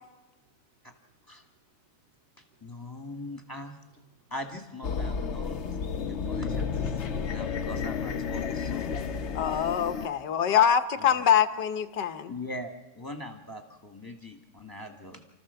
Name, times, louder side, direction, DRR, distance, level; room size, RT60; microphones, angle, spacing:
voice 1, 0.8-1.8 2.5-2.9 4.1-4.3, right 4 dB, 65° right, 0 dB, 3.4 m, -68 dB
voice 2, 2.6-3.8 4.3-5.6 6.0-9.9 11.0-11.3 12.3-15.2, left 1 dB, 15° left, 4 dB, 1.6 m, -42 dB
sound 1, 4.8-10.1, left 6 dB, 50° left, 0.9 m, -31 dB
voice 3, 9.4-12.3, left 8 dB, 90° left, 10 dB, 1.6 m, -24 dB
29.5 x 13.5 x 6.9 m, 1.1 s
omnidirectional pair, 1.8 m